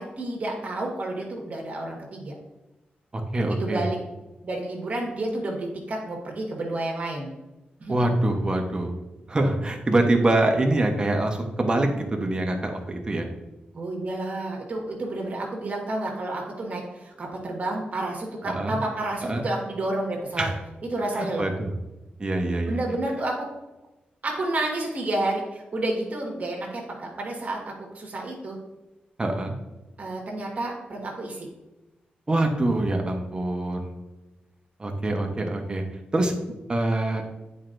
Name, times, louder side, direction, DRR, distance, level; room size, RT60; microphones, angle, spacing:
voice 1, 0.0-2.4 3.4-4.0 4.4-7.3 7.8-8.0 13.7-20.5 20.8-21.4 22.7-23.5 24.2-28.6 30.0-31.5, right 2 dB, 50° right, -1 dB, 1.6 m, -30 dB
voice 2, 3.1-3.9 7.9-8.9 9.3-13.3 18.4-18.7 19.2-19.4 20.4-20.6 21.2-21.7 22.2-22.8 29.2-29.5 32.3-33.9 34.8-35.8 36.1-36.3 36.7-37.2, right 2 dB, 25° right, 3 dB, 1.1 m, -24 dB
9.4 x 4.5 x 2.6 m, 1.0 s
wide cardioid pair, 105°, 3 cm